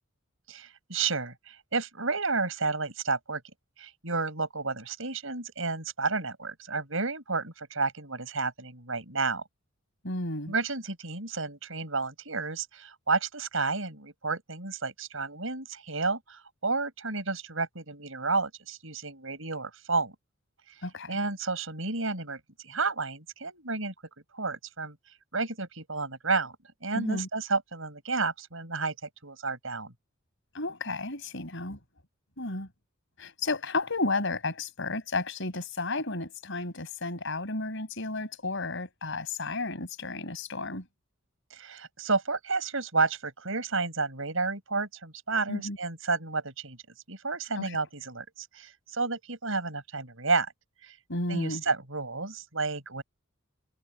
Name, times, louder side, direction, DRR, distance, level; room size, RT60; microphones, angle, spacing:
voice 1, 0.5-3.4 3.8-9.4 10.5-20.1 21.1-23.9 24.3-25.0 25.3-26.6 26.8-29.0 29.2-29.9 41.5-46.8 47.1-50.5 50.8-51.0 51.3-53.0, right 4 dB, 70° right, 6.9 m, -31 dB
voice 2, 10.0-10.5 20.8-21.2 26.9-27.3 30.5-31.8 32.4-32.7 33.2-40.8 45.5-45.8 47.6-47.8 51.1-51.6, left 2 dB, 65° left, 6.1 m, -32 dB
head